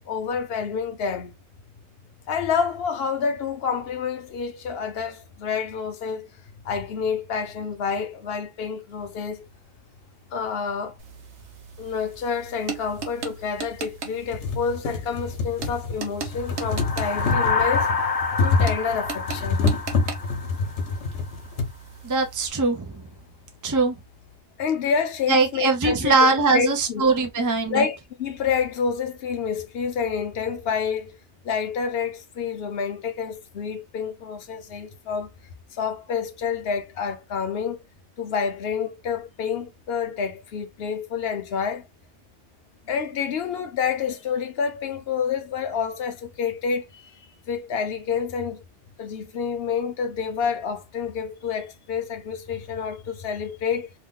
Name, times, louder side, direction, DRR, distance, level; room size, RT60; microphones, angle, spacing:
voice 1, 0.1-1.3 2.3-6.3 6.6-9.5 10.3-11.0 11.8-17.9 18.4-19.6 24.6-27.1 27.7-31.1 31.4-35.3 35.7-37.8 38.2-41.9 42.9-47.0 47.5-48.6 49.0-53.9, left 6 dB, 65° left, 0.9 m, -28 dB
sound 1, 11.0-22.5, right 6 dB, 80° right, 1.1 m, -39 dB
sound 2, 12.1-12.2 13.2-13.3 13.8-13.9 14.1-21.7 22.6-22.7 23.0-23.1, left 4 dB, 85° left, 1.1 m, -27 dB
sound 3, 16.4-21.0, left 5 dB, 50° left, 0.5 m, -27 dB
voice 2, 22.0-23.0 23.6-24.0 25.3-27.8, right 3 dB, 30° right, 0.3 m, -21 dB
2.9 x 2.2 x 3.6 m
omnidirectional pair, 1.2 m